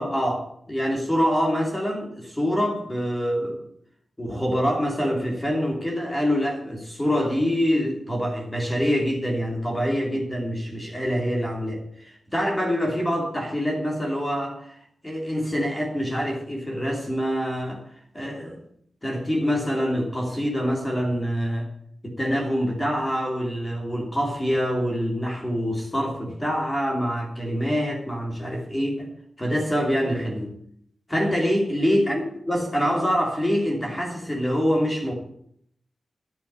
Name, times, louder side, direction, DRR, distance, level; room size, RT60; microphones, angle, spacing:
voice 1, 0.0-3.6 4.2-14.8 15.0-17.8 18.1-18.6 19.0-21.7 22.0-29.1 29.4-30.5 31.1-35.1, equal, 10° left, 0 dB, 2.8 m, -25 dB
11.0 x 7.0 x 9.5 m, 0.67 s
wide cardioid pair, 170°, 0 cm